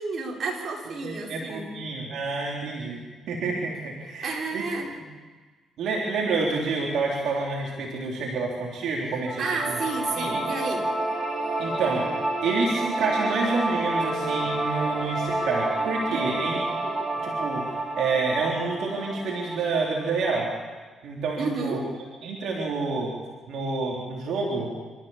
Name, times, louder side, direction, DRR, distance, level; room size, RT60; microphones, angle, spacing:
voice 1, 0.0-1.8 4.2-4.9 9.4-10.9 16.1-16.4 21.4-21.8, right 3 dB, 55° right, -1 dB, 4.9 m, -31 dB
voice 2, 1.0-4.6 5.8-9.8 10.2-10.3 11.6-12.1 12.4-16.9 17.2-17.7 18.0-20.5 21.0-21.8 22.2-23.1 23.5-24.7, right 4 dB, 75° right, -2 dB, 3.6 m, -28 dB
sound 1, 9.3-20.3, right 2 dB, 15° right, 6.6 m, -29 dB
26.5 x 14.0 x 7.3 m, 1.4 s
cardioid pair, 90°, 0 cm